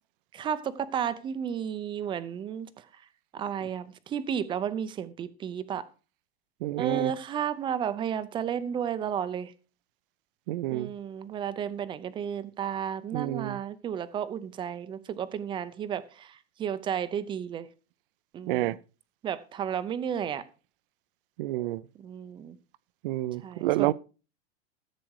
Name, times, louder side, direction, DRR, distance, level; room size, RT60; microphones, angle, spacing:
voice 1, 0.3-3.0 3.3-5.9 6.8-9.5 10.7-17.7 18.3-18.8 19.2-20.4 22.0-22.6 23.4-23.9, right 8 dB, 15° right, 0.6 m, -33 dB
voice 2, 6.6-7.1 10.5-10.9 13.1-13.6 18.5-18.8 21.4-21.8 23.0-23.9, right 16 dB, 60° right, 0.7 m, -29 dB
14.5 x 7.7 x 4.7 m
supercardioid pair, 165°, 32 cm